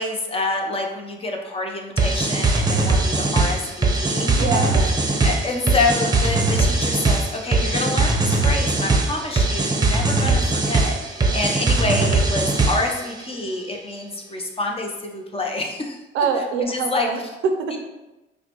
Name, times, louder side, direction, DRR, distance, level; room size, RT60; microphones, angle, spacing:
voice 1, 0.0-16.0 16.6-17.1 17.7-17.8, left 2 dB, 30° left, 2 dB, 0.7 m, -27 dB
sound 1, 2.0-13.0, right 3 dB, 20° right, 0.7 m, -20 dB
voice 2, 4.4-4.9 16.1-17.7, right 5 dB, 85° right, 5 dB, 0.6 m, -24 dB
5.7 x 2.2 x 3.0 m, 1.0 s
cardioid pair, 90°, 20 cm